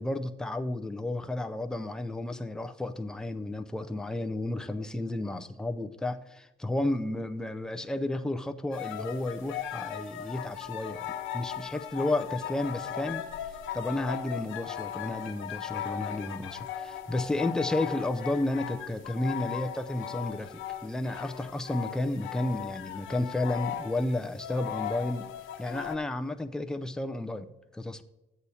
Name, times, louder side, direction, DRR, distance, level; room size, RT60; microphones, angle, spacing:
voice 1, 0.0-13.2 13.7-25.3 25.6-27.5 27.7-28.0, left 2 dB, 5° left, 7 dB, 0.5 m, -32 dB
sound 1, 8.7-26.0, left 9 dB, 85° left, 1.0 m, -38 dB
13.0 x 8.2 x 2.8 m, 1.0 s
cardioid pair, 90°, 20 cm